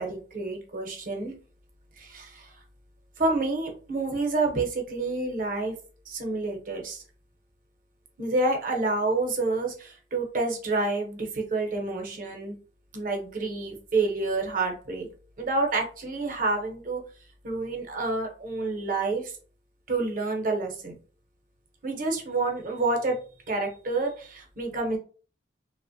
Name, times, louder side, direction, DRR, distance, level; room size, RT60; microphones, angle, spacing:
voice 1, 0.0-1.3 2.0-2.5 3.2-5.7 6.1-7.0 8.2-12.6 12.9-15.1 15.4-17.0 17.4-19.3 19.9-20.9 21.8-23.2 23.5-25.0, right 3 dB, 50° right, 2 dB, 0.7 m, -28 dB
2.9 x 2.1 x 2.6 m, 0.38 s
head